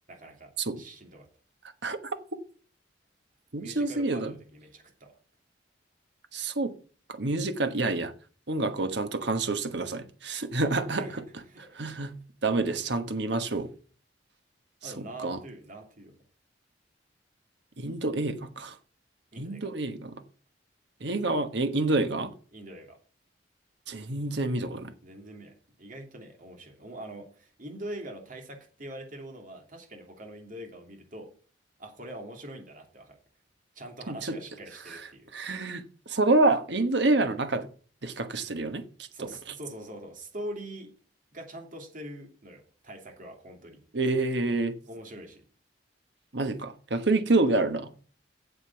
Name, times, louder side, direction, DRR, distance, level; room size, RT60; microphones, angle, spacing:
voice 1, 0.1-1.3 3.6-5.2 10.9-11.2 11.5-11.8 14.8-16.1 19.3-19.7 22.5-23.0 25.0-31.3 31.8-33.2 33.7-35.3 39.1-40.9 41.3-43.8 44.9-45.5, right 1 dB, 50° right, 2.9 m, -43 dB
voice 2, 3.5-4.3 6.3-6.7 7.1-8.1 8.5-11.0 11.7-12.2 12.4-13.7 14.8-15.4 17.8-18.8 19.4-20.2 21.0-22.3 23.9-24.9 34.1-34.4 35.3-37.7 38.0-38.8 43.9-44.7 46.3-47.9, right 2 dB, 70° right, 1.3 m, -27 dB
8.1 x 7.5 x 7.2 m
head